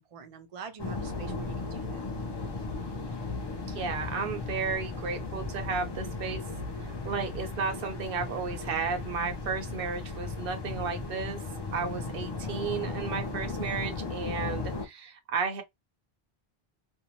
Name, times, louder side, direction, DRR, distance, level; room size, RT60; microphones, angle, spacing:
voice 1, 0.0-2.1, right 6 dB, 45° right, 0.5 m, -45 dB
sound 1, 0.8-14.9, left 3 dB, 30° left, 0.5 m, -36 dB
voice 2, 3.7-6.4 7.0-11.4 11.7-15.6, right 5 dB, 70° right, 0.8 m, -33 dB
2.6 x 2.1 x 2.9 m
omnidirectional pair, 1.0 m